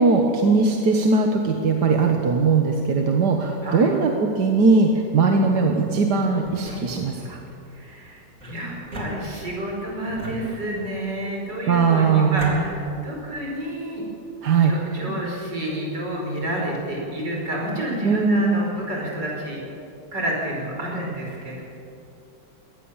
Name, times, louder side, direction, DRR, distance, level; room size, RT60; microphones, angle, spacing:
voice 1, 0.0-7.4 11.7-12.6 14.4-14.7 18.0-18.7, right 4 dB, 70° right, 2 dB, 1.9 m, -19 dB
sound 1, 6.4-7.4 8.4-9.7 10.2-11.0 11.8-12.6, left 1 dB, 50° right, 4.2 m, -37 dB
voice 2, 7.7-14.0 14.6-19.6 20.1-21.6, right 1 dB, 90° right, -2 dB, 6.0 m, -29 dB
22.0 x 18.5 x 7.3 m, 2.7 s
omnidirectional pair, 1.8 m